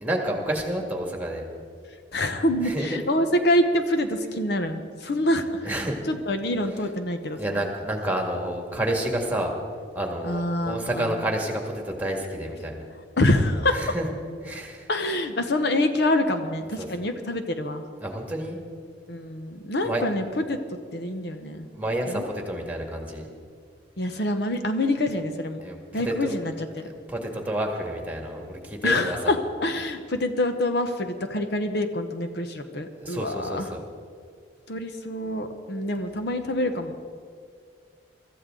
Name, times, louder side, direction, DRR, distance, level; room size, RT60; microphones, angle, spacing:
voice 1, 0.0-1.4 2.6-3.0 5.6-6.0 7.4-9.5 9.9-12.7 13.7-14.0 14.4-14.9 16.8-16.9 18.0-18.6 19.8-20.0 21.7-23.3 25.6-26.4 27.1-29.2 33.0-33.8, right 1 dB, 10° right, 1 dB, 2.0 m, -29 dB
voice 2, 2.1-5.7 6.1-7.4 10.2-11.1 13.2-13.8 14.9-17.8 19.1-20.6 20.9-21.7 22.1-22.2 24.0-25.6 25.9-26.9 28.8-33.7 34.7-37.2, left 1 dB, 60° left, 7 dB, 1.0 m, -26 dB
23.5 x 14.0 x 3.9 m, 2.1 s
head